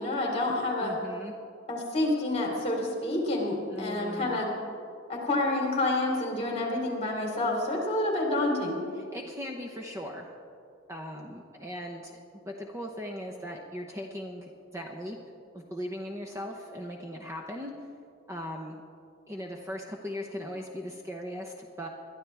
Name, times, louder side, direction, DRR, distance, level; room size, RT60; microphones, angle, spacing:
voice 1, 0.0-1.0 1.7-4.5 5.1-8.8, left 2 dB, 30° left, -1 dB, 3.3 m, -28 dB
voice 2, 0.8-1.3 3.7-4.4 9.0-10.3 10.9-15.2 15.5-17.7 18.3-18.8 19.3-21.9, equal, 15° right, 1 dB, 0.9 m, -39 dB
22.0 x 12.5 x 3.4 m, 2.4 s
head